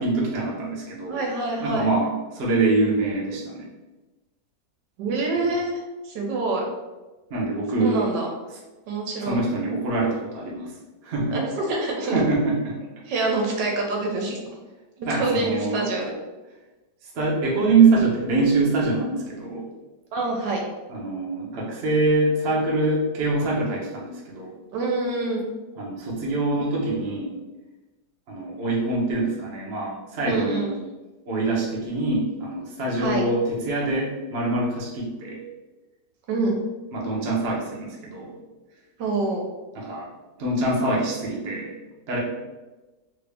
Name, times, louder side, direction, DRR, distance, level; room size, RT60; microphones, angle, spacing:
voice 1, 0.0-1.3 1.6-3.7 7.3-8.2 8.5-8.6 9.2-11.4 12.1-12.8 15.1-15.9 17.0-19.7 20.9-24.5 25.8-27.3 28.3-30.7 31.3-35.4 36.9-38.3 39.7-40.1 40.4-41.7 42.1-42.2, right 3 dB, 50° right, -4 dB, 0.8 m, -24 dB
voice 2, 1.1-1.9 5.0-5.7 6.0-6.6 7.7-8.3 8.9-9.4 11.3-12.2 13.1-14.4 15.0-16.1 20.1-20.6 24.7-25.5 30.2-30.7 33.0-33.2 36.3-36.6 39.0-39.4, right 3 dB, 80° right, 0 dB, 1.3 m, -26 dB
3.1 x 2.6 x 3.3 m, 1.2 s
omnidirectional pair, 1.9 m